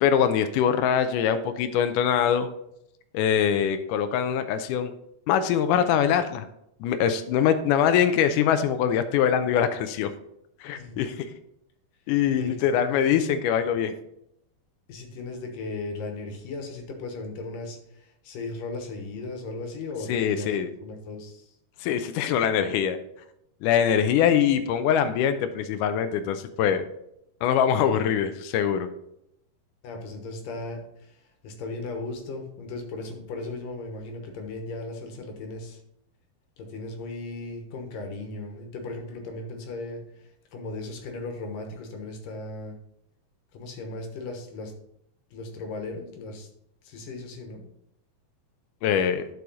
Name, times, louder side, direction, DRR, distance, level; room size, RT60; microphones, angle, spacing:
voice 1, 0.0-2.5 3.1-4.9 5.3-6.5 6.8-10.1 10.6-11.3 12.1-13.9 20.1-20.7 21.8-23.0 23.6-26.9 27.4-28.9 48.8-49.2, left 8 dB, 85° left, 9 dB, 1.9 m, -23 dB
voice 2, 10.7-11.1 12.3-13.1 14.9-21.6 29.8-35.8 36.6-42.8 43.5-44.7 45.3-46.5 46.8-47.6, left 2 dB, 70° left, 4 dB, 2.7 m, -37 dB
11.5 x 4.9 x 4.0 m, 0.77 s
omnidirectional pair, 4.2 m